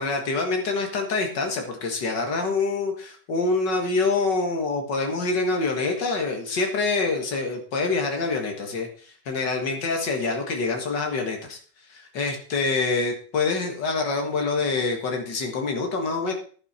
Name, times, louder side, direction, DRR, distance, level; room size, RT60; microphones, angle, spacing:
voice 1, 0.0-11.6 11.9-16.3, left 3 dB, 85° left, 3 dB, 2.4 m, -26 dB
11.5 x 9.8 x 4.3 m, 0.43 s
omnidirectional pair, 1.8 m